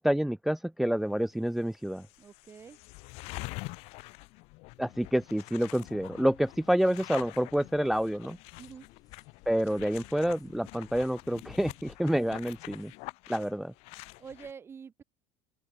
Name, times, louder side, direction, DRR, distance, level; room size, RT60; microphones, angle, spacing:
voice 1, 0.0-2.0 4.8-8.4 9.5-12.9 13.3-13.7, equal, ahead, 0.4 m, -28 dB
sound 1, 1.4-1.5 1.8-14.5, left 26 dB, 55° left, 2.2 m, -46 dB
voice 2, 2.2-2.8 8.6-8.9 14.2-15.0, right 6 dB, 20° right, 2.4 m, -46 dB
sound 2, 7.6-13.1, left 9 dB, 30° left, 7.3 m, -65 dB
open air
cardioid pair, 150°, 12 cm